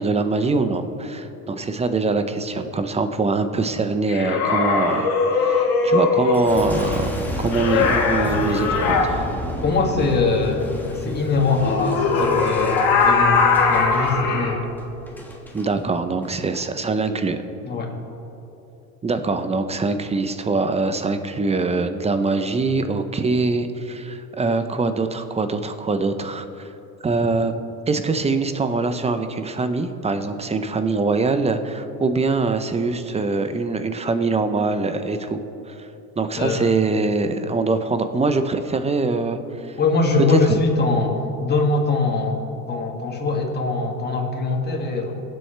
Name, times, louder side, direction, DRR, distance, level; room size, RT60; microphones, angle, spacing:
voice 1, 0.0-7.1 7.4-9.3 15.5-17.4 19.0-26.7 27.0-27.5 27.9-35.4 35.7-35.9 36.2-39.8 40.3-40.6, right 3 dB, 15° right, 9 dB, 0.8 m, -23 dB
sound 1, 4.1-6.5 7.5-9.1 11.6-14.5, left 4 dB, 55° left, 2.0 m, -20 dB
Boom, 6.3-15.7 16.2-16.7, left 1 dB, 5° left, 1.6 m, -31 dB
voice 2, 9.6-14.7 17.7-17.9 36.4-36.7 39.8-45.2, left 3 dB, 25° left, 0 dB, 2.3 m, -22 dB
23.5 x 7.9 x 3.4 m, 2.9 s
hypercardioid pair, 95°, 42 cm